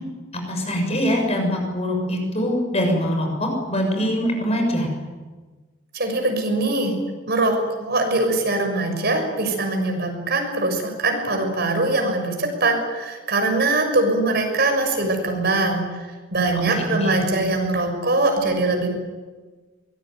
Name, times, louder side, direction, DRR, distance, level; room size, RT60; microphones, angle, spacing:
voice 1, 0.3-4.9 16.8-17.1, equal, 30° left, 2 dB, 6.8 m, -23 dB
voice 2, 5.9-6.9 7.3-15.8 16.3-18.9, right 2 dB, 50° right, 4 dB, 6.5 m, -22 dB
24.5 x 21.0 x 9.4 m, 1.3 s
head